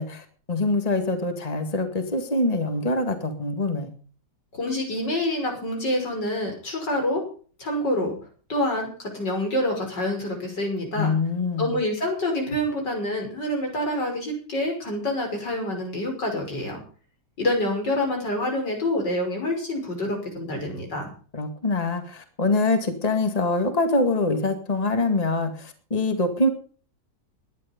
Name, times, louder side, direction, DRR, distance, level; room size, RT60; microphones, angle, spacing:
voice 1, 0.0-3.9 11.0-11.8 21.3-26.5, left 2 dB, 20° left, 7 dB, 2.2 m, -24 dB
voice 2, 4.5-7.2 7.6-8.1 8.5-11.1 11.6-16.8 17.4-21.1, left 1 dB, 85° left, 2 dB, 6.5 m, -27 dB
19.0 x 11.0 x 5.3 m, 0.42 s
omnidirectional pair, 1.8 m